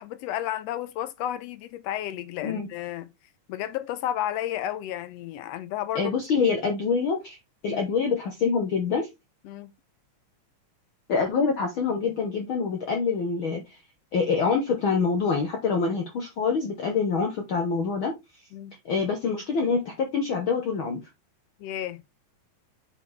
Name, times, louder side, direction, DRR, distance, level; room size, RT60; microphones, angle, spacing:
voice 1, 0.0-3.1 3.5-6.1 7.7-7.8 9.4-9.7 18.5-18.7 21.6-22.0, left 12 dB, 80° left, 1.5 m, -32 dB
voice 2, 5.9-7.4 7.6-9.1 11.1-13.8 14.1-18.1 18.8-21.0, left 5 dB, 60° left, 1.4 m, -25 dB
8.2 x 4.3 x 3.4 m
omnidirectional pair, 3.4 m